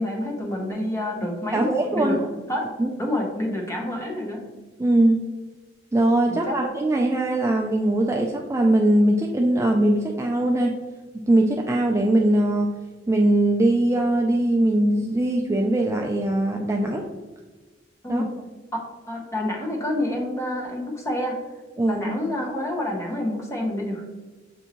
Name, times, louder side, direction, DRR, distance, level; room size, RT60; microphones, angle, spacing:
voice 1, 0.0-2.2 2.5-2.7 3.0-4.5 6.3-6.6 18.0-18.3 19.1-21.4 21.9-24.1, left 1 dB, 15° left, -1 dB, 0.9 m, -28 dB
voice 2, 1.5-2.2 2.8-2.9 4.8-5.2 5.9-10.8 11.1-12.7 13.1-17.1 18.1-18.2 21.8-22.1, right 1 dB, 15° right, 0 dB, 0.3 m, -21 dB
6.9 x 2.6 x 2.9 m, 1.3 s
head